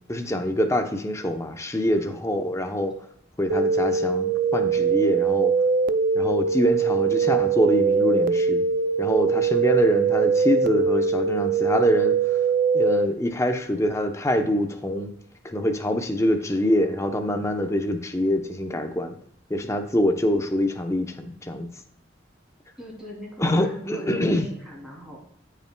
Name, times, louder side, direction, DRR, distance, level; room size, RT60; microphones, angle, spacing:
voice 1, 0.1-2.9 3.4-5.5 6.1-8.7 9.0-12.2 12.7-15.1 15.4-19.2 19.5-21.7 23.4-24.4, left 1 dB, 15° left, 5 dB, 0.8 m, -25 dB
sound 1, 3.5-13.1, right 5 dB, 50° right, 0.4 m, -22 dB
voice 2, 22.8-25.2, right 1 dB, 5° right, -4 dB, 3.0 m, -40 dB
13.5 x 5.8 x 2.3 m, 0.69 s
head